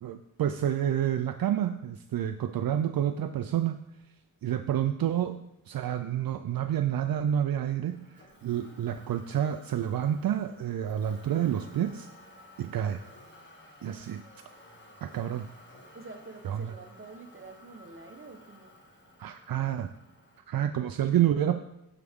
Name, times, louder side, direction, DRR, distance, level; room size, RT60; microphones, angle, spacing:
voice 1, 0.0-3.8 4.4-12.1 12.6-13.0 13.8-14.2 15.0-15.5 16.5-16.6 19.2-19.9 20.5-21.6, right 10 dB, 70° right, 9 dB, 0.5 m, -29 dB
Motor vehicle (road), 7.9-20.4, left 1 dB, 30° left, 1.9 m, -54 dB
voice 2, 15.9-18.8, right 3 dB, 35° right, 5 dB, 1.1 m, -47 dB
13.0 x 4.9 x 3.6 m, 0.87 s
wide cardioid pair, 90°, 37 cm